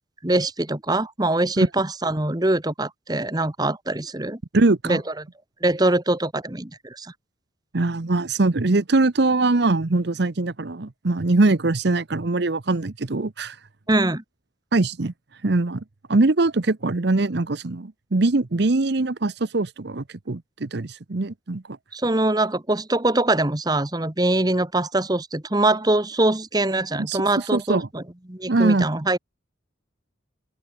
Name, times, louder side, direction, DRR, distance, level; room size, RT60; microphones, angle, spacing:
voice 1, 0.2-4.4 4.8-5.0 5.6-7.1 13.9-14.2 21.9-28.0 28.3-29.2, right 2 dB, 20° right, 1.2 m, -23 dB
voice 2, 4.5-5.0 7.7-13.6 14.7-15.1 15.4-15.8 16.1-21.8 27.1-27.9 28.5-28.9, right 2 dB, 55° right, 0.8 m, -22 dB
open air
head